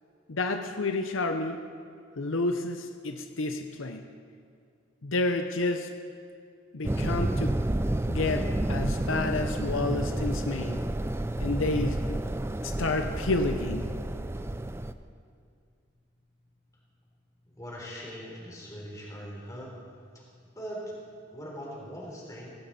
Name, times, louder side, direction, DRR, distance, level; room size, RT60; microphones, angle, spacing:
voice 1, 0.3-1.6 2.2-4.1 5.0-5.9 6.7-7.6 8.1-10.8 11.4-12.0 12.6-14.0, left 2 dB, 80° left, 6 dB, 0.8 m, -30 dB
sound 1, 6.8-14.9, right 1 dB, 15° right, 0.4 m, -30 dB
voice 2, 17.6-19.7 20.1-20.2 20.5-21.0 21.3-22.5, equal, 15° left, -3 dB, 3.8 m, -40 dB
17.0 x 16.5 x 4.3 m, 2.3 s
head